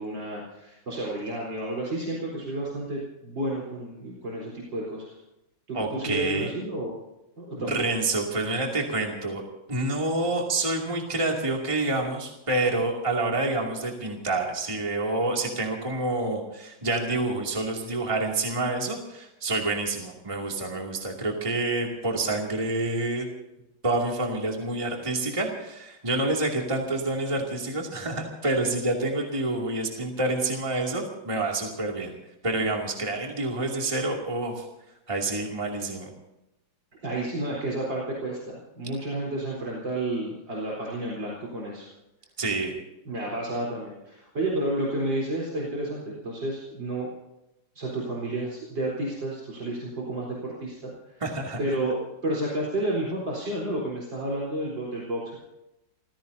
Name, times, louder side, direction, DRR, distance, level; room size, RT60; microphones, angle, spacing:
voice 1, 0.0-5.1 5.7-6.9 7.4-7.7 37.0-41.9 43.0-47.1 47.7-50.9 51.6-55.4, right 1 dB, 65° right, -4 dB, 4.8 m, -31 dB
voice 2, 5.7-6.5 7.6-9.4 9.7-23.3 23.8-32.1 32.4-34.6 35.1-36.1 42.4-42.7 51.2-51.6, right 2 dB, 15° right, 0 dB, 2.6 m, -28 dB
29.0 x 16.5 x 2.8 m, 0.92 s
omnidirectional pair, 2.2 m